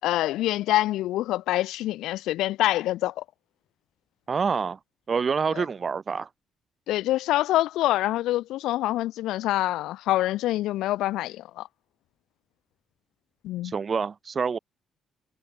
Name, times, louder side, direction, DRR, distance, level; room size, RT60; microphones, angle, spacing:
voice 1, 0.0-3.2 5.5-5.6 6.9-11.7 13.4-13.7, left 15 dB, 90° left, 4.3 m, -26 dB
voice 2, 4.3-4.8 5.1-6.3 13.6-14.6, right 5 dB, 40° right, 7.1 m, -27 dB
cardioid pair, 90°, 0 cm